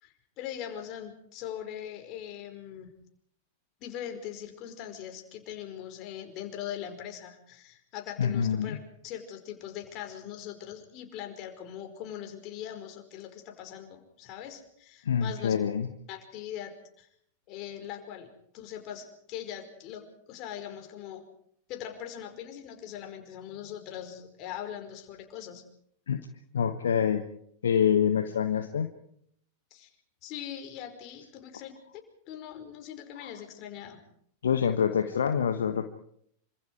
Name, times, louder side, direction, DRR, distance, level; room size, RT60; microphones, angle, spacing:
voice 1, 0.0-2.9 3.8-8.8 9.0-15.6 16.1-17.1 17.5-21.2 21.7-25.6 29.7-29.9 30.2-31.7 32.3-34.0, left 10 dB, 40° left, 6 dB, 5.1 m, -41 dB
voice 2, 8.2-8.8 15.0-15.9 26.1-26.3 26.5-27.2 27.6-28.9 33.2-33.3 34.4-35.9, left 8 dB, 65° left, 9 dB, 1.3 m, -26 dB
27.5 x 25.5 x 4.8 m, 0.68 s
figure-of-eight pair, 90°, 0 cm